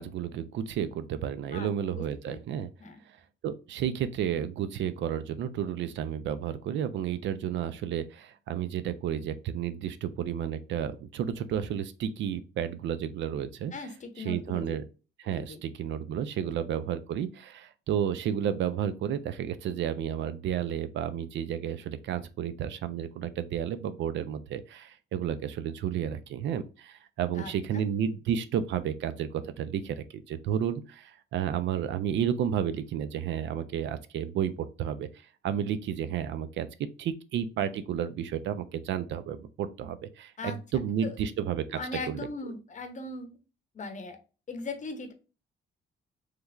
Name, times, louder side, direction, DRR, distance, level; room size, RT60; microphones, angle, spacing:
voice 1, 0.0-2.7 3.4-13.7 14.2-14.8 15.2-34.5 34.8-35.1 35.4-36.7 37.0-41.8 42.1-42.3, right 9 dB, 70° right, 0.4 m, -32 dB
voice 2, 1.5-2.4 2.8-3.0 13.7-14.8 15.3-15.6 16.4-16.5 27.3-27.8 40.4-40.6 41.0-41.2 41.7-43.4 43.7-44.2 44.5-45.1, left 3 dB, 40° left, 0.7 m, -39 dB
3.4 x 3.1 x 2.3 m
cardioid pair, 90°, 20 cm